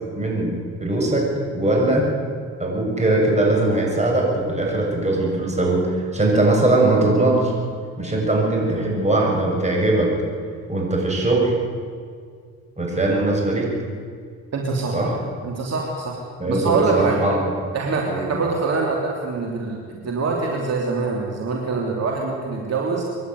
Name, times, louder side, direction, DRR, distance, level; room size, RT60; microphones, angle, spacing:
voice 1, 0.2-2.1 2.6-7.5 8.0-10.1 10.7-11.5 12.8-13.7 14.9-15.2 16.4-17.4 18.1-18.3, right 2 dB, 25° right, -1 dB, 7.1 m, -20 dB
voice 2, 14.5-15.0 15.4-16.2 16.5-17.2 17.7-23.0, right 4 dB, 55° right, -1 dB, 3.3 m, -24 dB
25.0 x 11.5 x 9.5 m, 2.1 s
cardioid pair, 90°, 30 cm